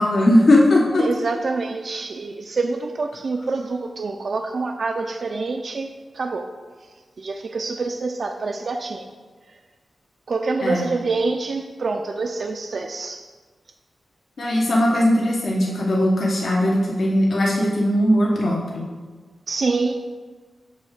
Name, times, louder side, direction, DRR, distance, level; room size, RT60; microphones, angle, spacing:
voice 1, 0.0-1.1 10.6-10.9 14.4-18.9, left 1 dB, 70° left, -3 dB, 1.2 m, -19 dB
voice 2, 1.0-6.4 7.2-9.1 10.3-13.2 19.5-19.9, right 3 dB, 60° right, 4 dB, 0.4 m, -26 dB
9.6 x 3.3 x 6.6 m, 1.4 s
wide cardioid pair, 115°, 0 cm